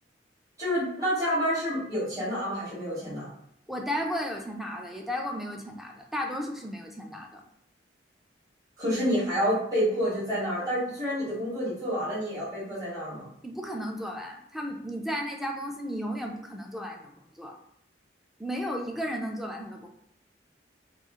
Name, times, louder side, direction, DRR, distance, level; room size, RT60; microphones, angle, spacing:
voice 1, 0.6-3.3 8.8-13.2, equal, 20° right, -10 dB, 1.4 m, -28 dB
voice 2, 3.7-7.4 13.4-17.6 18.4-19.9, equal, ahead, 2 dB, 0.4 m, -34 dB
3.0 x 2.4 x 3.6 m, 0.71 s
head